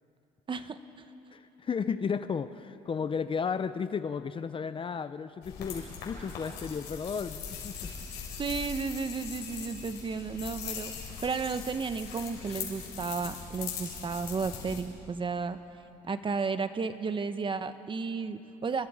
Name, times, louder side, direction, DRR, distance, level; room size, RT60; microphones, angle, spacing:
voice 1, 0.5-0.8 8.4-10.9 11.2-15.6 16.0-18.9, right 5 dB, 30° right, 11 dB, 1.0 m, -33 dB
voice 2, 1.3-7.9, left 6 dB, 30° left, 12 dB, 0.6 m, -33 dB
sound 1, 5.4-14.8, left 6 dB, 80° left, 5.5 m, -40 dB
30.0 x 22.5 x 5.0 m, 2.9 s
cardioid pair, 110°, 17 cm